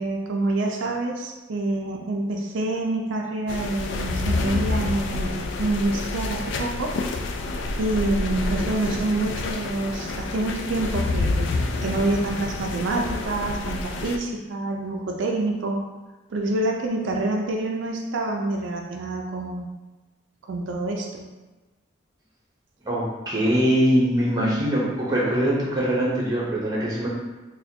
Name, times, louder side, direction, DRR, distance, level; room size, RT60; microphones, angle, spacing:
voice 1, 0.0-6.9 7.8-11.5 11.8-15.8 16.3-19.7 20.5-21.3 24.4-24.7, right 2 dB, 75° right, 1 dB, 0.4 m, -27 dB
sound 1, 3.5-14.2, left 3 dB, 70° left, 0.3 m, -28 dB
voice 2, 22.8-27.1, equal, 20° right, -5 dB, 0.8 m, -22 dB
4.1 x 2.2 x 2.7 m, 1.2 s
head